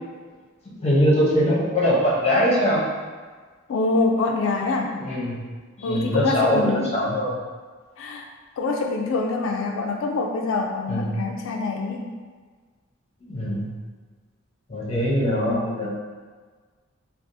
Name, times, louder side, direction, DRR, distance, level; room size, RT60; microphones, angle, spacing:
voice 1, 0.8-2.8 4.9-5.4 5.8-7.4 10.9-11.1 13.3-13.7 14.7-15.9, equal, 30° left, -5 dB, 0.7 m, -22 dB
voice 2, 3.7-5.0 5.8-7.0 8.0-8.3 8.6-12.1, left 3 dB, 65° left, 1 dB, 0.3 m, -25 dB
3.3 x 2.4 x 2.6 m, 1.5 s
head